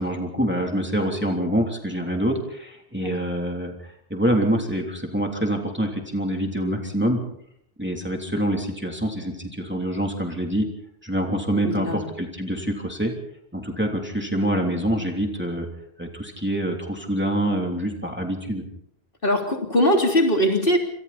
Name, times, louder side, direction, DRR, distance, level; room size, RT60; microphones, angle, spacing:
voice 1, 0.0-7.2 7.8-10.7 11.0-13.1 13.5-15.7 16.0-18.6, right 1 dB, 10° right, 1 dB, 3.2 m, -26 dB
voice 2, 11.7-12.0 19.2-20.8, equal, 55° left, 2 dB, 3.6 m, -20 dB
28.0 x 25.5 x 4.3 m, 0.72 s
omnidirectional pair, 1.1 m